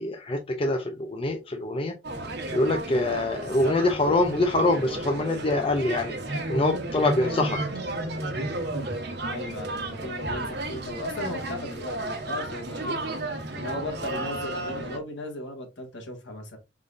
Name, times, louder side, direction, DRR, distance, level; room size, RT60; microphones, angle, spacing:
voice 1, 0.0-1.9 2.5-7.6, left 2 dB, 30° left, 0.5 m, -25 dB
sound 1, 2.0-15.0, right 2 dB, 60° right, 1.1 m, -33 dB
voice 2, 9.3-13.0 13.5-16.6, left 1 dB, 65° left, 1.5 m, -36 dB
4.9 x 3.7 x 2.5 m
head